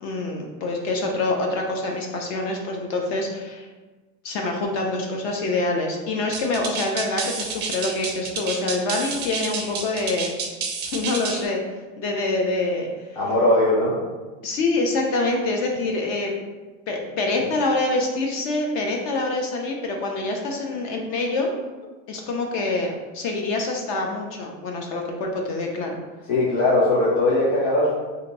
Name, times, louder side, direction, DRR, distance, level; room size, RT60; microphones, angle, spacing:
voice 1, 0.0-3.7 4.2-10.3 10.9-11.6 12.0-12.9 14.4-16.3 16.9-21.5 22.1-25.9, left 2 dB, 45° left, 1 dB, 0.5 m, -25 dB
sound 1, 6.3-11.5, right 5 dB, 30° right, 0.4 m, -30 dB
voice 2, 13.1-14.0 26.3-27.9, left 1 dB, 85° left, -8 dB, 1.3 m, -19 dB
2.8 x 2.6 x 3.9 m, 1.3 s
supercardioid pair, 145°, 38 cm